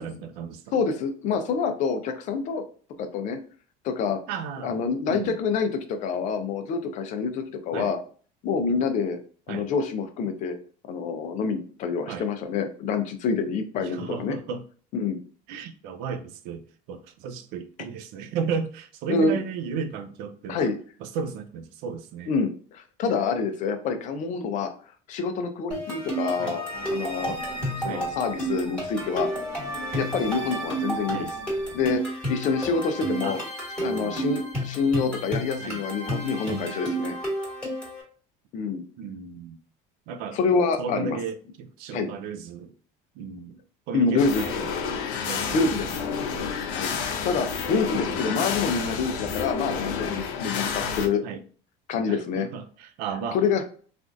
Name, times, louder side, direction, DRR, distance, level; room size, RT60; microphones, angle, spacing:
voice 1, 0.0-0.7 4.3-5.4 7.7-7.9 9.5-9.7 12.1-12.3 13.8-14.6 15.5-20.7 21.0-22.3 26.4-26.6 27.8-28.1 31.1-31.3 33.2-33.4 33.8-34.2 35.6-35.8 39.0-39.6 40.1-40.4 40.8-42.7 43.2-43.6 43.9-45.9 48.1-48.6 51.2-51.4 52.1-53.4, right 6 dB, 65° right, 0.5 m, -34 dB
voice 2, 0.7-2.7 3.0-3.4 3.8-4.2 4.6-8.0 8.4-9.2 9.5-10.6 10.9-14.4 14.9-15.2 19.1-19.4 20.5-20.8 22.3-24.7 25.1-26.6 26.9-27.4 27.8-29.3 29.9-31.2 31.7-32.0 32.3-33.4 33.8-37.2 38.5-38.8 40.3-41.2 41.9-42.1 43.9-44.4 45.5-45.9 46.7-46.9 47.2-51.2 51.9-52.5 53.3-53.6, left 5 dB, 45° left, 0.5 m, -26 dB
sound 1, 25.7-38.0, right 1 dB, 5° left, 1.3 m, -31 dB
Human voice, 26.7-32.0, equal, 15° right, 0.8 m, -45 dB
sound 2, 44.2-51.1, left 6 dB, 90° left, 0.6 m, -30 dB
3.3 x 2.4 x 2.6 m
cardioid pair, 155°, 17 cm